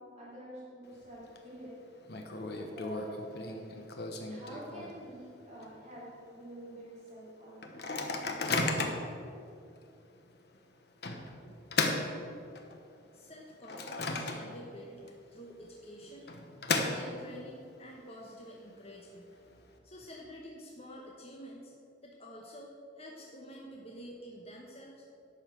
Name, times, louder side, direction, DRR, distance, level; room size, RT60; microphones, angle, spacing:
voice 1, 0.0-1.9 2.5-3.3 4.3-7.7 11.4-11.5, right 1 dB, 35° right, -7 dB, 3.1 m, -47 dB
Microwave oven, 0.8-1.4 1.7-1.8 2.1-5.2 5.6-5.7 5.9-6.3 6.8-6.9 7.6-9.1 9.8-9.9 11.0-12.8 13.3-14.8 15.1-15.2 16.0-17.4, left 3 dB, 55° left, 1.0 m, -35 dB
voice 2, 13.1-15.0 15.3-16.4 16.8-19.4 19.8-21.7 22.0-25.0, equal, 30° left, -2 dB, 1.1 m, -48 dB
11.5 x 5.6 x 7.8 m, 2.5 s
head